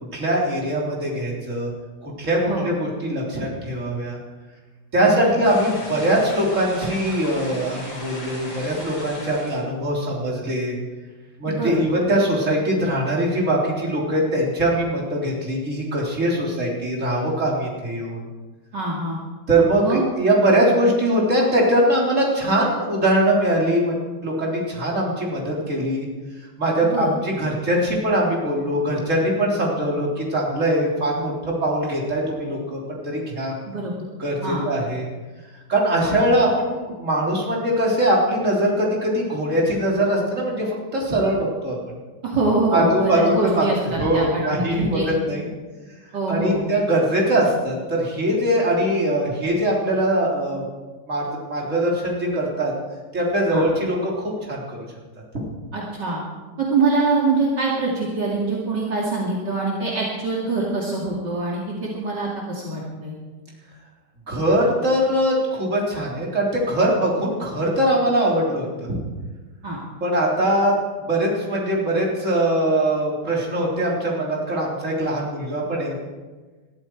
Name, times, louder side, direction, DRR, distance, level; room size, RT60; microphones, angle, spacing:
voice 1, 0.1-1.7 2.0-4.2 4.9-10.7 11.4-18.2 19.5-23.9 24.2-26.1 26.6-33.5 34.2-35.1 35.7-41.9 42.7-43.7 44.0-45.0 45.2-45.5 46.3-50.6 51.1-52.7 53.1-54.9 55.3-55.5 64.3-69.0 70.0-70.7 71.0-75.9, right 1 dB, 40° right, -3 dB, 3.8 m, -22 dB
voice 2, 5.0-5.4 11.5-11.7 18.7-19.2 19.8-20.0 26.8-27.1 33.7-33.9 34.4-34.7 36.0-36.2 42.2-45.1 46.1-46.6 53.5-53.7 55.7-56.2 56.6-63.1 69.6-69.8, right 3 dB, 60° right, -4 dB, 2.9 m, -24 dB
sound 1, 5.4-9.6, left 1 dB, 70° left, 5.4 m, -37 dB
21.0 x 13.5 x 4.7 m, 1.3 s
omnidirectional pair, 2.1 m